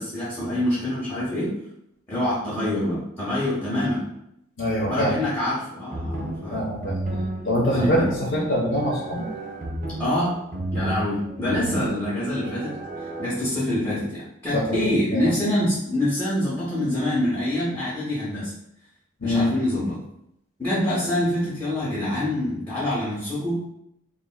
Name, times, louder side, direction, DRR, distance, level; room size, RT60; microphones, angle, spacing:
voice 1, 0.0-1.5 2.1-4.1 4.9-6.6 7.7-8.1 10.0-10.4 10.7-18.5 19.2-20.0 20.6-23.6, left 1 dB, 10° left, -9 dB, 0.6 m, -25 dB
voice 2, 4.6-5.2 6.5-7.0 7.4-9.3 14.5-14.8 15.1-15.3 19.2-19.5, equal, 70° left, -6 dB, 0.7 m, -24 dB
sound 1, 5.9-13.3, right 1 dB, 40° right, 0.3 m, -32 dB
3.2 x 2.4 x 2.2 m, 0.78 s
head